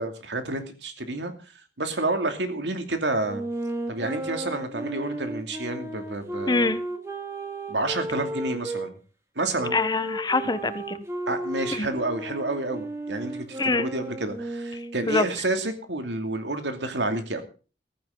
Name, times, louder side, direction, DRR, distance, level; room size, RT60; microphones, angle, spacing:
voice 1, 0.0-1.3 1.8-3.4 3.9-6.7 7.7-9.0 9.4-9.8 11.3-17.4, right 2 dB, 90° right, 7 dB, 2.6 m, -29 dB
sound 1, 3.2-8.9 9.6-15.1, right 1 dB, 15° right, 2.4 m, -34 dB
voice 2, 6.5-6.8 9.7-11.0 11.7-11.9 13.6-13.9 15.0-15.2, left 3 dB, 25° left, 13 dB, 1.0 m, -24 dB
15.5 x 14.5 x 3.9 m, 0.36 s
head